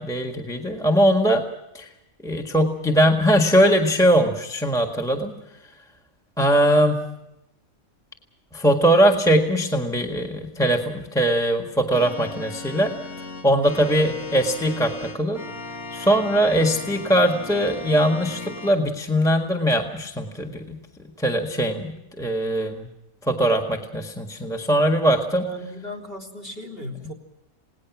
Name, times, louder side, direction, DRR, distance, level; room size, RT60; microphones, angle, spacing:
voice 1, 0.0-1.4 1.7-1.9 2.2-5.4 6.4-7.0 8.5-12.9 13.4-15.4 15.9-20.8 21.2-22.9 23.2-25.5, equal, ahead, 2 dB, 1.6 m, -21 dB
Organ, 11.9-18.7, left 2 dB, 80° left, 2.5 m, -36 dB
voice 2, 25.3-27.1, left 1 dB, 40° left, 5 dB, 4.0 m, -36 dB
28.5 x 18.5 x 6.1 m, 0.86 s
omnidirectional pair, 1.5 m